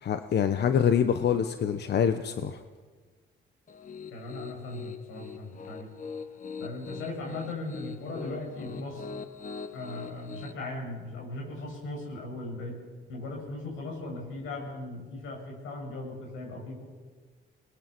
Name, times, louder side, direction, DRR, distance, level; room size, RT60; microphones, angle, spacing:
voice 1, 0.0-2.6, left 8 dB, 55° left, 9 dB, 1.0 m, -25 dB
Piano, 3.7-10.5, left 5 dB, 40° left, 1.4 m, -42 dB
voice 2, 4.1-5.9 6.6-9.1 9.7-12.8 13.1-16.8, left 2 dB, 85° left, 0 dB, 8.0 m, -38 dB
24.0 x 20.5 x 6.1 m, 1.5 s
cardioid pair, 90°, 20 cm